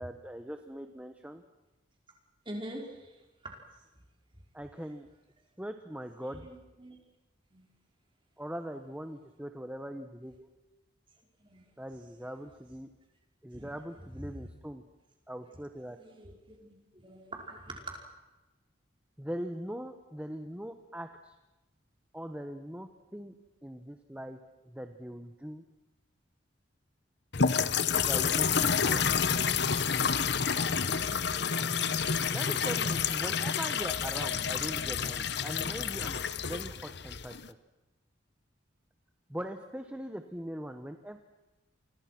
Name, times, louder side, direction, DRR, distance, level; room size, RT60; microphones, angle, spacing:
voice 1, 0.0-1.4 4.5-5.1 5.6-6.5 8.4-10.5 11.8-12.9 13.4-14.8 15.3-16.0 19.2-21.4 22.1-23.3 23.6-24.4 24.6-25.6 28.0-29.2 32.3-37.6 39.3-41.2, equal, 5° right, 7 dB, 1.0 m, -41 dB
voice 2, 2.5-3.1 3.4-3.5 6.2-7.0 7.5-7.6 11.4-11.6 13.5-14.5 16.0-18.0, right 1 dB, 25° right, 0 dB, 5.4 m, -44 dB
sound 1, 27.3-37.5, left 6 dB, 60° left, 1.0 m, -29 dB
29.0 x 25.0 x 6.1 m, 1.1 s
head